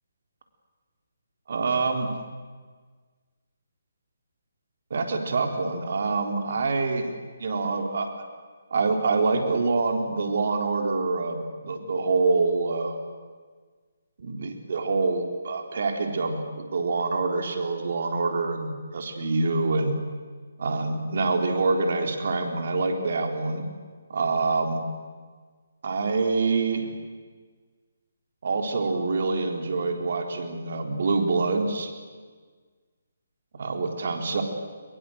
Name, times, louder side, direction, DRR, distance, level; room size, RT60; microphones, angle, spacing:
voice 1, 1.5-2.1 4.9-8.1 8.7-13.0 14.2-20.0 20.6-23.6 24.1-24.8 25.8-26.9 28.4-31.9 33.5-34.4, right 3 dB, 60° right, 4 dB, 3.7 m, -26 dB
22.5 x 21.5 x 7.9 m, 1.5 s
figure-of-eight pair, 150°, 0 cm